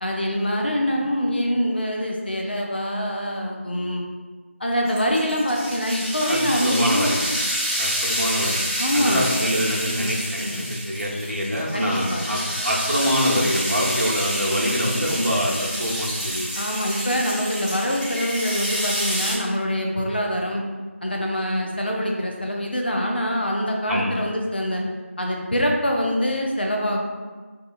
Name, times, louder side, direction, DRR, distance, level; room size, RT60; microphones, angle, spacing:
voice 1, 0.0-4.0 4.6-7.1 8.8-9.3 11.7-12.2 16.6-20.6 21.0-24.8 25.2-27.0, equal, 45° left, 0 dB, 0.4 m, -24 dB
sound 1, 4.9-19.3, equal, 30° right, 0.9 m, -28 dB
voice 2, 6.3-7.2 7.8-8.6 8.9-16.4 23.8-24.1, equal, 80° right, -4 dB, 0.7 m, -25 dB
2.7 x 2.2 x 2.5 m, 1.4 s
figure-of-eight pair, 175°, 7 cm